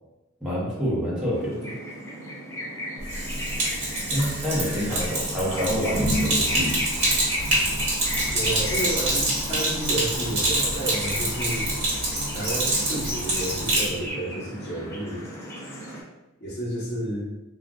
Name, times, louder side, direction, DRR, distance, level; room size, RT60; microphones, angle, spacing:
voice 1, 0.4-1.7 4.1-6.7, equal, 5° right, -8 dB, 0.8 m, -27 dB
sound 1, 1.3-16.0, equal, 10° left, 0.5 m, -35 dB
Sink (filling or washing), 3.0-13.9, right 1 dB, 70° right, 1.3 m, -26 dB
sound 2, 6.9-13.8, equal, 70° left, 1.5 m, -38 dB
voice 2, 8.3-11.7 12.3-15.2 16.4-17.3, right 1 dB, 45° left, -6 dB, 1.0 m, -31 dB
3.5 x 2.3 x 2.3 m, 1.0 s
head